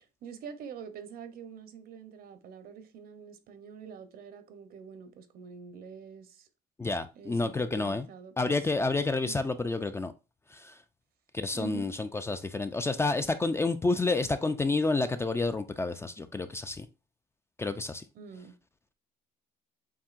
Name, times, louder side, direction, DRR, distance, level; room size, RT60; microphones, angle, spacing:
voice 1, 0.2-6.5 7.2-8.5 9.2-9.5 11.5-12.0 18.1-18.6, right 7 dB, 60° right, 0.8 m, -45 dB
voice 2, 6.8-8.1 8.4-10.1 10.5-10.8 11.3-16.9 17.6-18.0, left 3 dB, 15° left, 0.4 m, -29 dB
7.2 x 2.7 x 2.5 m
cardioid pair, 110°, 17 cm